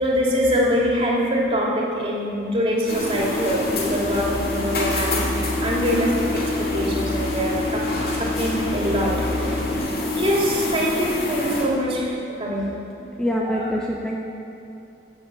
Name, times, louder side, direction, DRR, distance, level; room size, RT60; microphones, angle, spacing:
voice 1, 0.0-7.9 8.1-9.6 10.1-12.7 13.4-13.7, equal, 30° right, -4 dB, 2.5 m, -24 dB
sound 1, 2.9-11.6, left 2 dB, 50° left, 2.2 m, -26 dB
sound 2, 3.8-9.7, left 2 dB, 35° left, 1.1 m, -32 dB
voice 2, 13.2-14.2, equal, 5° left, -2 dB, 0.7 m, -24 dB
16.5 x 7.9 x 6.8 m, 2.7 s
head